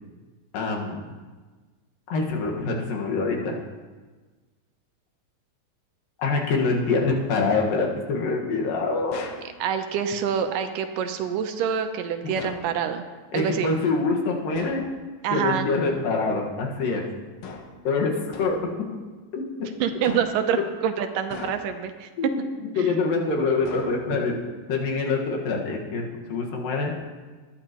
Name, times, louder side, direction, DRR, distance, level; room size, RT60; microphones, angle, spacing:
voice 1, 0.5-1.0 2.1-3.5 6.2-9.3 12.2-12.3 13.3-14.9 15.3-17.0 17.8-18.1 18.4-18.6 19.3-19.4 20.1-20.2 22.2-22.4 22.8-24.3 24.7-26.0 26.3-26.9, left 3 dB, 85° left, 0 dB, 3.3 m, -25 dB
sound 1, 9.1-9.5 12.4-12.8 14.5-14.9 17.4-17.8 18.3-18.7 20.0-20.5 21.3-21.9 23.6-24.3, left 5 dB, 65° left, 1.4 m, -39 dB
voice 2, 9.6-13.0 13.3-13.7 15.2-15.7 19.8-20.6 20.8-22.1 22.8-22.9, right 8 dB, 80° right, 7 dB, 2.4 m, -26 dB
20.0 x 11.5 x 3.0 m, 1.3 s
omnidirectional pair, 3.8 m